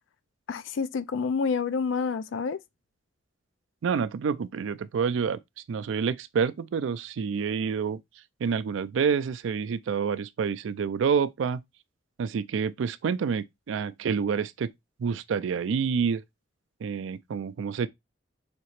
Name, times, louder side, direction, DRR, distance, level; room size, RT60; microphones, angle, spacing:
voice 1, 0.5-2.6, left 5 dB, 70° left, 0.4 m, -28 dB
voice 2, 3.8-5.4 5.7-8.0 8.4-11.6 12.2-14.7 15.0-16.2 16.8-17.9, right 6 dB, 70° right, 0.3 m, -28 dB
5.1 x 2.8 x 2.9 m
head